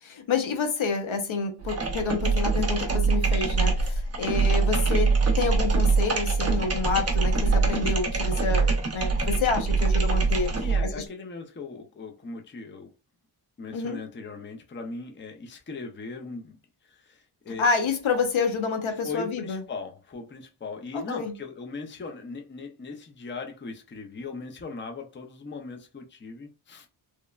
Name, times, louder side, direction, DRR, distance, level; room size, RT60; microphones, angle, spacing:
voice 1, 0.0-10.5 10.8-11.0 13.7-14.0 17.6-19.6 20.9-21.3, left 5 dB, 75° left, 0.7 m, -28 dB
sound 1, 1.6-10.9, right 4 dB, 30° right, 0.6 m, -24 dB
voice 2, 10.5-12.9 13.6-16.6 16.8-17.7 18.9-26.9, left 4 dB, 25° left, 0.5 m, -39 dB
3.0 x 2.1 x 2.3 m
wide cardioid pair, 95°, 49 cm